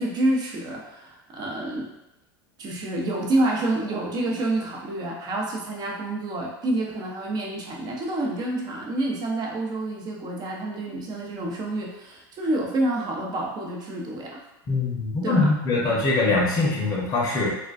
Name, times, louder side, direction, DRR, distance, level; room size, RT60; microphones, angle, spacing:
voice 1, 0.0-1.9 2.6-14.4 15.2-15.5, right 1 dB, 35° right, -1 dB, 0.6 m, -28 dB
voice 2, 14.7-17.6, left 3 dB, 35° left, -3 dB, 0.7 m, -23 dB
2.3 x 2.2 x 2.4 m, 0.93 s
hypercardioid pair, 100°, 12 cm